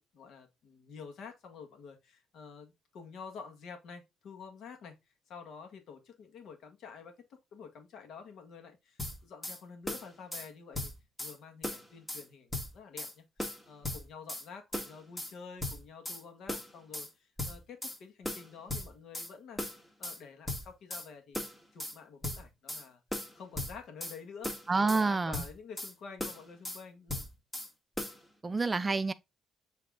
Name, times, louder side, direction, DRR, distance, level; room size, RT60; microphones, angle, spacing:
voice 1, 0.0-4.9 5.3-10.9 11.2-19.6 20.0-21.4 21.7-23.0 23.3-27.3, left 6 dB, 75° left, 1.8 m, -49 dB
sound 1, 9.0-9.6 9.9-10.5 10.7-11.3 11.6-12.2 12.5-13.1 13.4-14.4 14.7-15.3 15.6-16.2 16.5-17.1 17.4-18.0 18.2-19.3 19.6-20.2 20.5-21.1 21.3-22.0 22.2-22.8 23.1-24.2 24.4-25.0 25.3-25.9 26.2-26.8 27.1-27.7 28.0-28.2, left 1 dB, 15° left, 2.0 m, -38 dB
voice 2, 24.7-25.4 28.4-29.1, right 3 dB, 25° right, 0.6 m, -28 dB
7.3 x 3.5 x 3.8 m
cardioid pair, 90°, 0 cm